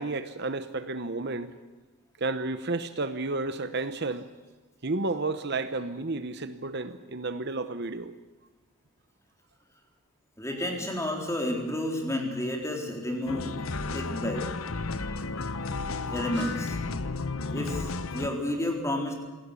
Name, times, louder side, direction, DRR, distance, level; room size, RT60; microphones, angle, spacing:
voice 1, 0.0-1.5 2.2-4.3 4.8-8.1 15.8-16.0 16.4-16.5, right 3 dB, 50° right, 10 dB, 1.0 m, -32 dB
voice 2, 10.4-13.5 13.9-14.4 16.1-16.8 17.5-19.1, left 1 dB, 15° left, 1 dB, 4.0 m, -31 dB
sound 1, 13.3-18.3, left 3 dB, 70° left, 1.1 m, -33 dB
27.0 x 18.5 x 8.4 m, 1.2 s
head